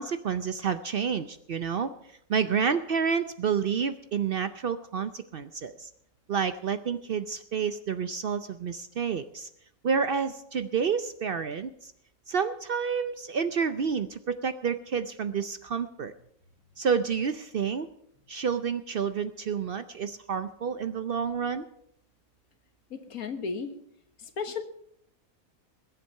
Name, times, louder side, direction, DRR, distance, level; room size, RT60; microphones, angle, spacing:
voice 1, 0.0-1.9 2.3-5.9 6.3-9.5 9.8-11.9 12.3-16.1 16.8-17.9 18.3-21.6, right 6 dB, 55° right, 11 dB, 0.7 m, -29 dB
voice 2, 22.9-23.7 24.2-24.6, left 5 dB, 85° left, 8 dB, 1.8 m, -34 dB
21.0 x 8.4 x 5.5 m, 0.74 s
omnidirectional pair, 1.5 m